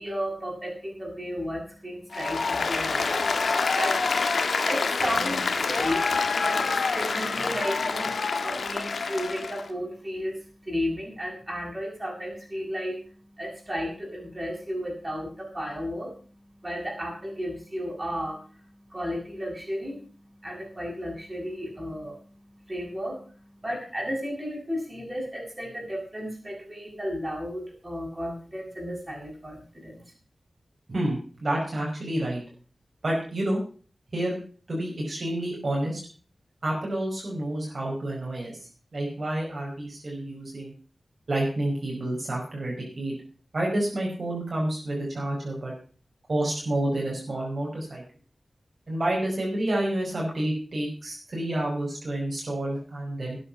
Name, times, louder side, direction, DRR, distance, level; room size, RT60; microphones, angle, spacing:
voice 1, 0.0-30.0, equal, 20° right, -1 dB, 7.6 m, -34 dB
Applause, 2.1-9.6, left 4 dB, 85° left, 1.6 m, -26 dB
voice 2, 30.9-32.4 33.0-33.6 34.1-34.4 34.7-36.0 36.6-38.6 38.9-40.7 41.3-43.2 43.5-45.7 46.3-48.0 48.9-53.4, right 1 dB, 55° right, -3 dB, 5.4 m, -29 dB
13.0 x 10.0 x 5.9 m, 0.40 s
wide cardioid pair, 95°, 0 cm